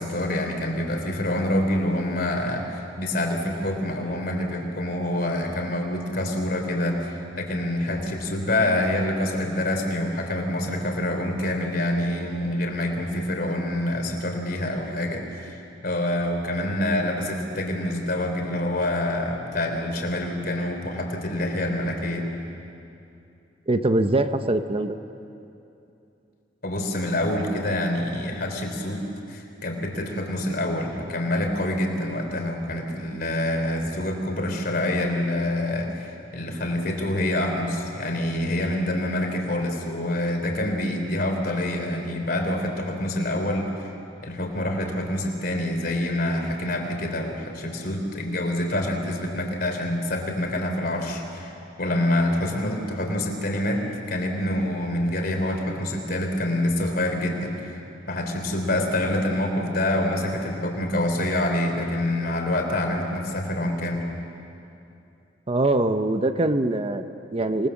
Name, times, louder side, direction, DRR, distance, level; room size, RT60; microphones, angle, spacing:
voice 1, 0.0-22.3 26.6-43.9 44.2-57.8 58.1-64.0, left 1 dB, 55° left, 3 dB, 3.4 m, -26 dB
voice 2, 23.7-25.0 65.5-67.7, right 2 dB, 30° right, 9 dB, 0.7 m, -23 dB
27.0 x 19.5 x 7.2 m, 2.7 s
head